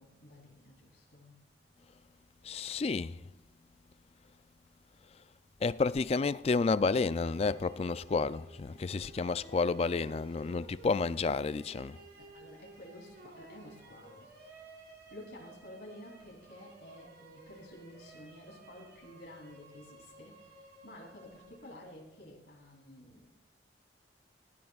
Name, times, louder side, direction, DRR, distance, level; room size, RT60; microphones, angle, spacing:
voice 1, 0.0-1.4 12.2-23.4, left 1 dB, 85° left, 3.4 m, -52 dB
voice 2, 2.4-3.2 5.6-12.0, left 4 dB, 35° left, 0.3 m, -30 dB
sound 1, 7.0-22.1, right 2 dB, 65° right, 5.2 m, -55 dB
18.5 x 14.5 x 2.4 m
head